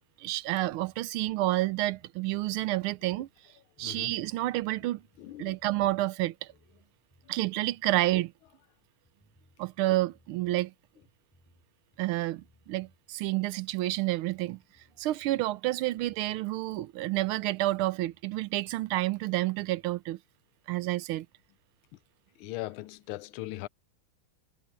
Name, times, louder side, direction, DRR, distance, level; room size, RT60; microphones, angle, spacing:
voice 1, 0.2-3.3 3.8-5.0 5.4-6.5 7.3-8.3 9.6-10.7 12.0-14.6 15.0-20.2 20.7-21.3, right 16 dB, 85° right, 1.5 m, -29 dB
sound 1, 0.8-1.4 1.7-3.3 3.8-5.9 6.2-8.1 8.4-8.6 9.0-10.7 11.0-11.6 11.9-13.0 13.4-15.4 15.8-15.9 16.1-16.4 16.7-20.0, equal, 10° left, 6.4 m, -66 dB
voice 2, 3.8-4.1 5.2-5.5 22.4-23.7, left 17 dB, 75° left, 1.5 m, -39 dB
omnidirectional pair, 2.3 m